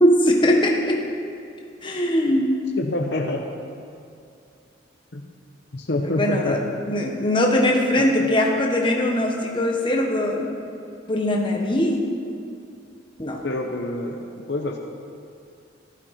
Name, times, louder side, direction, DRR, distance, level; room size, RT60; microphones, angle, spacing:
voice 1, 0.0-1.0 1.8-2.5 6.0-6.6 6.9-10.5 11.1-12.0 13.2-13.4, left 1 dB, 25° left, 0 dB, 1.3 m, -21 dB
voice 2, 2.8-3.4 5.1-5.3 5.7-6.8 8.2-8.3 13.4-14.8, left 2 dB, 60° left, 2 dB, 0.8 m, -27 dB
15.0 x 12.0 x 4.3 m, 2.4 s
head